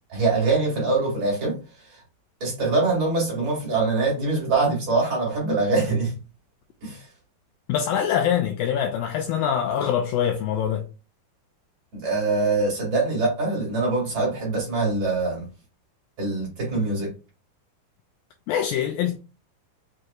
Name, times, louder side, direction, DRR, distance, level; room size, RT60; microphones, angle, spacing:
voice 1, 0.1-1.6 1.8-2.0 2.4-6.2 6.8-7.1 11.9-15.5 16.2-17.1, right 3 dB, 45° right, 2.5 m, -23 dB
voice 2, 7.7-10.8 18.5-19.2, left 9 dB, 85° left, 2.0 m, -24 dB
6.1 x 2.8 x 2.3 m
omnidirectional pair, 4.5 m